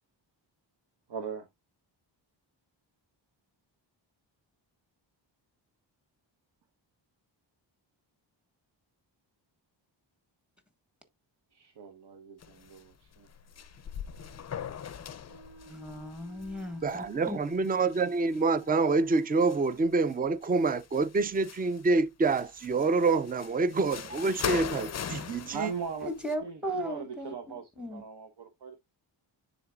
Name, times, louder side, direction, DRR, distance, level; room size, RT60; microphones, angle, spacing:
voice 1, 1.1-1.5 11.5-13.3 25.4-26.1 26.4-28.7, right 6 dB, 60° right, 1.1 m, -40 dB
sound 1, 12.4-12.9 13.1-18.6 19.2-20.1 20.4-21.9 22.2-26.3, left 8 dB, 35° left, 0.5 m, -40 dB
Wind instrument woodwind instrument, 15.3-20.1, right 4 dB, 80° right, 3.1 m, -54 dB
voice 2, 15.7-16.8 17.3-17.4 26.0-28.0, equal, ahead, 1.5 m, -36 dB
voice 3, 16.8-25.7, right 3 dB, 20° right, 0.5 m, -27 dB
10.0 x 4.0 x 2.3 m
wide cardioid pair, 105°, 46 cm